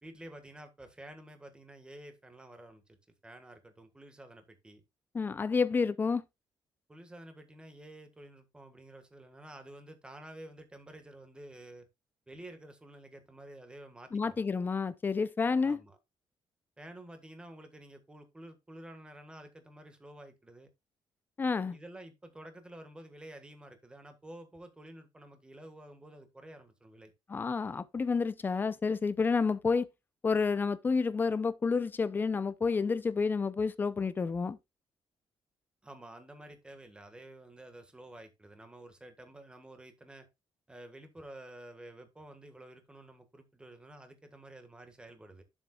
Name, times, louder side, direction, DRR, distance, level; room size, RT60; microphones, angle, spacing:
voice 1, 0.0-3.0 3.2-4.8 6.9-11.9 12.3-14.4 15.6-16.0 16.8-20.7 21.7-27.1 35.8-40.3 40.7-45.4, right 1 dB, 10° right, 1.6 m, -50 dB
voice 2, 5.1-6.2 14.1-15.8 21.4-21.8 27.3-29.9 30.2-34.6, left 5 dB, 20° left, 0.5 m, -29 dB
10.5 x 7.2 x 2.4 m
cardioid pair, 175°, 9 cm